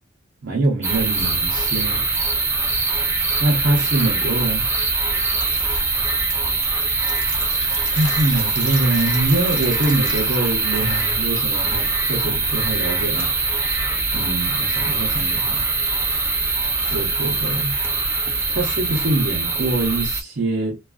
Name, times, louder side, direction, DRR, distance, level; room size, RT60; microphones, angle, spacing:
voice 1, 0.4-2.0 3.4-4.7 7.9-13.7 14.1-15.6 16.9-17.7 18.5-20.8, right 2 dB, 60° right, 0.6 m, -24 dB
sound 1, 0.8-20.2, right 3 dB, 15° right, 0.4 m, -22 dB
Drip, 5.4-11.0, left 3 dB, 65° left, 0.9 m, -40 dB
2.3 x 2.3 x 2.3 m
head